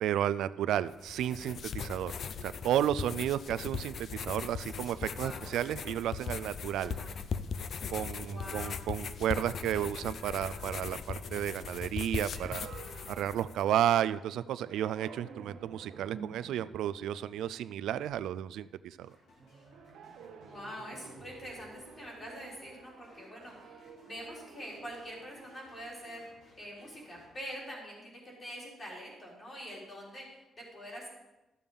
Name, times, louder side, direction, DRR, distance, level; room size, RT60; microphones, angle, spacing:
voice 1, 0.0-2.1 2.4-6.9 7.9-12.7 13.1-19.2, right 11 dB, 90° right, 15 dB, 0.3 m, -32 dB
sound 1, 0.9-13.6, left 6 dB, 45° left, 0.5 m, -39 dB
voice 2, 5.2-5.5 6.8-7.1 8.1-8.8 20.4-26.3 26.6-31.1, equal, 25° left, -3 dB, 3.6 m, -45 dB
sound 2, 8.3-14.2 14.7-18.6 19.4-25.9, right 5 dB, 65° right, 1.1 m, -52 dB
sound 3, 19.0-27.4, left 1 dB, 85° left, 3.4 m, -62 dB
13.0 x 7.0 x 5.4 m, 1.0 s
cardioid pair, 170°, 0 cm